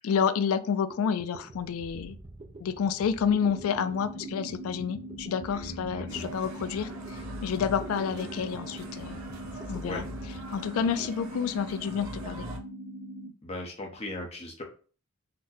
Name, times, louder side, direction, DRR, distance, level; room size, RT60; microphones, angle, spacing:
voice 1, 0.0-2.2 2.6-9.2 9.7-10.0 10.5-12.5, left 7 dB, 75° left, 14 dB, 0.3 m, -29 dB
sound 1, 0.9-11.4, right 2 dB, 25° right, 0.4 m, -47 dB
sound 2, 3.3-13.3, right 1 dB, 55° right, 0.9 m, -42 dB
voice 2, 5.5-6.2 9.8-10.0 10.8-10.9 13.4-14.6, left 1 dB, 30° left, 1 dB, 0.7 m, -38 dB
sound 3, 6.1-12.6, right 1 dB, 80° right, 1.1 m, -43 dB
3.9 x 2.1 x 2.7 m, 0.38 s
head